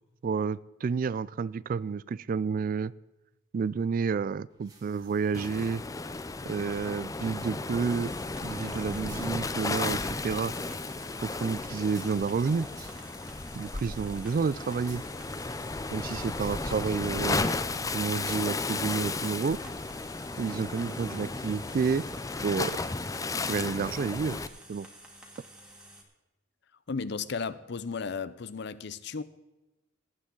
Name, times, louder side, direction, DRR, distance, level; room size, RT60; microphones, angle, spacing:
voice 1, 0.2-2.9 3.5-5.8 6.5-8.1 8.4-10.5 11.2-12.7 13.6-15.0 15.9-17.6 17.9-19.6 20.4-22.0 22.4-22.8 23.5-24.4 24.7-24.9, right 5 dB, 45° right, 0.3 m, -30 dB
sound 1, 4.5-19.4, right 2 dB, 20° right, 2.0 m, -58 dB
Waves surf, 5.3-24.5, left 3 dB, 15° left, 0.4 m, -34 dB
sound 2, 7.8-26.0, right 1 dB, 5° right, 2.0 m, -51 dB
voice 2, 26.9-29.2, left 5 dB, 60° left, 0.6 m, -34 dB
19.5 x 8.7 x 3.8 m
head